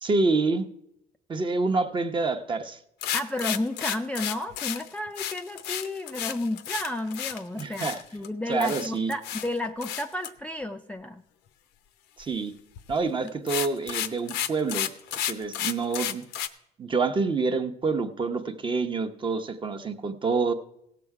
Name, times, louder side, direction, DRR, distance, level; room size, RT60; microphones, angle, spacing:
voice 1, 0.0-0.7 1.3-2.8 7.5-8.0 8.5-9.1 12.2-12.5 12.9-14.9 15.3-16.2 16.8-20.5, right 4 dB, 30° right, 8 dB, 0.8 m, -27 dB
sound 1, 3.0-8.3 8.6-9.5 9.8-10.3 12.8-13.0 13.3-16.5, left 11 dB, 85° left, 0.7 m, -32 dB
voice 2, 3.1-11.2, left 1 dB, 5° left, 5 dB, 0.4 m, -32 dB
17.0 x 6.9 x 4.8 m, 0.80 s
cardioid pair, 110°, 17 cm